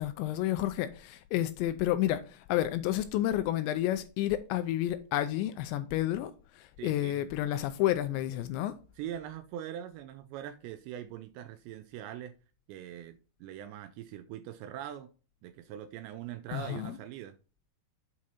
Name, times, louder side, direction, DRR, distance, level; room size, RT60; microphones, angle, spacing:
voice 1, 0.0-8.8 16.5-17.0, left 13 dB, 85° left, 2.7 m, -30 dB
voice 2, 6.8-7.2 9.0-12.3 12.7-15.1 15.4-17.4, right 11 dB, 85° right, 2.6 m, -42 dB
8.6 x 4.7 x 4.2 m
omnidirectional pair, 5.4 m